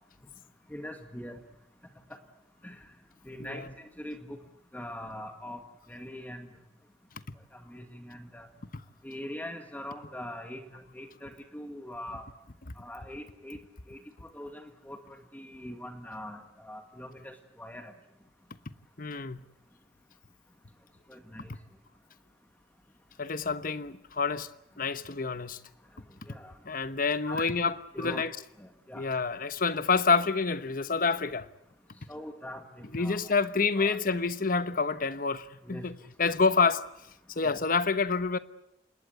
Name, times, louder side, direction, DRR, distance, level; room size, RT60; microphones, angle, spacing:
voice 1, 0.7-1.4 2.6-2.9 3.3-4.4 4.7-5.6 5.9-6.5 7.5-8.5 9.0-12.3 12.8-13.6 13.9-17.9 21.1-21.5 26.2-26.5 27.3-27.5 27.9-28.3 28.6-29.0 32.1-33.5 33.7-34.0 35.6-35.8 36.2-36.3 37.4-37.6, left 1 dB, 10° left, 1.9 m, -42 dB
voice 2, 19.0-19.4 23.2-24.5 24.8-25.6 26.7-28.3 29.0-31.5 32.9-36.8 37.4-38.4, left 4 dB, 50° left, 1.1 m, -28 dB
27.5 x 20.5 x 8.0 m
head